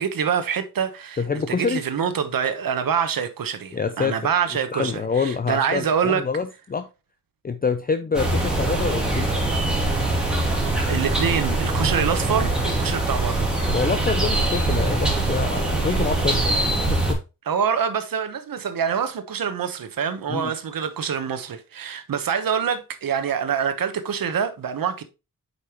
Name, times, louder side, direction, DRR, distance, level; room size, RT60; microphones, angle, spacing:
voice 1, 0.0-6.2 10.9-12.5 12.8-13.5 17.5-25.0, right 7 dB, 85° right, 1.0 m, -25 dB
voice 2, 1.2-1.8 3.7-4.1 4.7-6.9 7.4-9.3 13.7-16.6 16.9-17.2 20.3-20.5, left 5 dB, 25° left, 0.5 m, -26 dB
sound 1, 8.1-17.1, right 2 dB, ahead, 2.6 m, -23 dB
8.2 x 5.4 x 2.9 m
wide cardioid pair, 140°, 33 cm